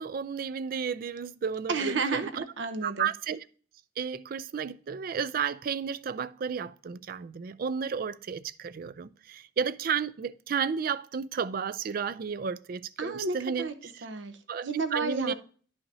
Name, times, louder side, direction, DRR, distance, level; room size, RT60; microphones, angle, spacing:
voice 1, 0.0-2.4 2.8-3.4 4.0-13.7 14.5-15.3, right 6 dB, 50° right, 0.4 m, -32 dB
voice 2, 1.7-3.1 13.0-13.7 14.0-15.3, right 4 dB, 75° right, 0.8 m, -32 dB
11.0 x 5.7 x 2.7 m
head